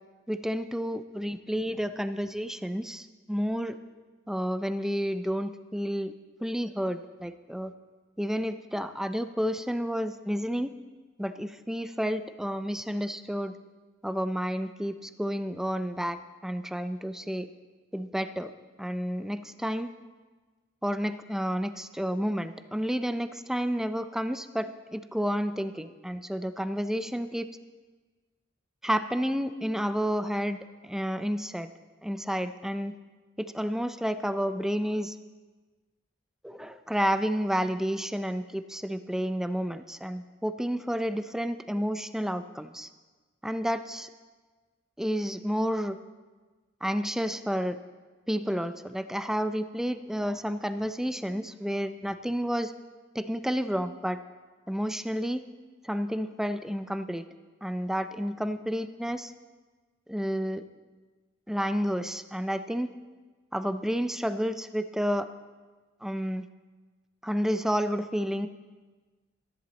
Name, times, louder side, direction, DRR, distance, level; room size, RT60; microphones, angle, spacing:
voice 1, 0.3-3.8 4.3-6.1 6.4-7.7 8.2-10.7 11.2-13.5 14.0-17.5 17.9-18.5 18.8-19.9 20.8-27.5 28.8-31.7 32.0-33.0 33.4-35.2 36.4-42.9 43.4-44.1 45.0-46.0 46.8-47.8 48.3-52.7 53.1-54.2 54.7-55.4 55.8-57.2 57.6-59.3 60.1-60.6 61.5-62.9 63.5-65.3 66.0-66.5 67.2-68.5, equal, 5° right, 11 dB, 0.4 m, -30 dB
13.5 x 10.5 x 4.1 m, 1.4 s
head